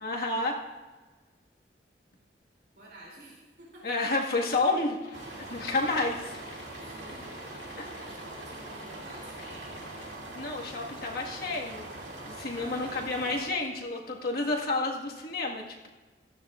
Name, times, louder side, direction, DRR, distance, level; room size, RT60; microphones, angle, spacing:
voice 1, 0.0-0.6 3.8-5.1 5.4-6.4 7.8-8.1 10.3-11.9 12.3-15.9, left 2 dB, 55° left, -1 dB, 1.7 m, -30 dB
voice 2, 2.7-3.9 6.8-7.5 8.0-10.3 12.5-13.0, right 1 dB, 65° right, -4 dB, 3.0 m, -51 dB
sound 1, 5.0-10.1, left 3 dB, 85° left, 2.5 m, -52 dB
sound 2, 5.1-13.5, right 2 dB, 85° right, 2.4 m, -42 dB
17.5 x 13.5 x 2.5 m, 1.3 s
head